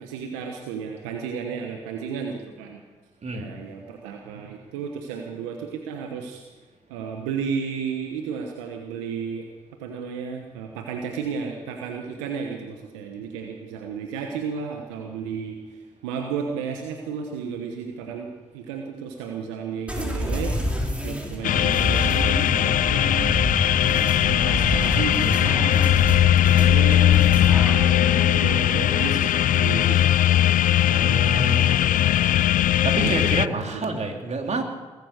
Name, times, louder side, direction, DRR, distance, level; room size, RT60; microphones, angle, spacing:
voice 1, 0.0-2.8 3.3-6.4 6.9-9.4 9.8-20.6 21.0-26.0 26.5-27.2 27.7-30.3 31.0-31.8 33.0-33.2 33.6-33.8, right 6 dB, 90° right, 3 dB, 1.1 m, -33 dB
sound 1, 19.9-27.9, equal, 10° right, 4.5 m, -28 dB
sound 2, 21.4-33.5, left 12 dB, 60° left, 0.4 m, -19 dB
voice 2, 30.9-32.0 32.8-34.6, right 2 dB, 45° right, 3 dB, 3.1 m, -28 dB
21.0 x 9.9 x 6.7 m, 1.2 s
hypercardioid pair, 40°, 16 cm